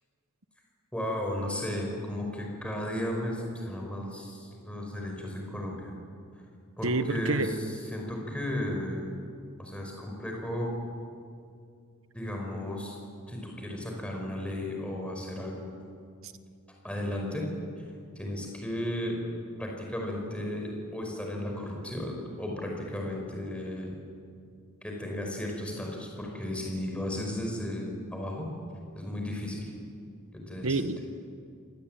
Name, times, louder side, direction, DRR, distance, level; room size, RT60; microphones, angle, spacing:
voice 1, 0.9-5.9 6.3-6.4 6.8-9.2 9.6-10.7 12.1-13.0 13.3-15.7 16.8-17.5 18.2-19.2 19.6-23.9 24.8-28.5 28.9-29.7 30.3-30.8, left 1 dB, 5° left, 0 dB, 5.3 m, -34 dB
voice 2, 6.8-7.6 30.6-31.0, right 3 dB, 75° right, 11 dB, 1.3 m, -28 dB
27.0 x 19.0 x 9.1 m, 2.3 s
head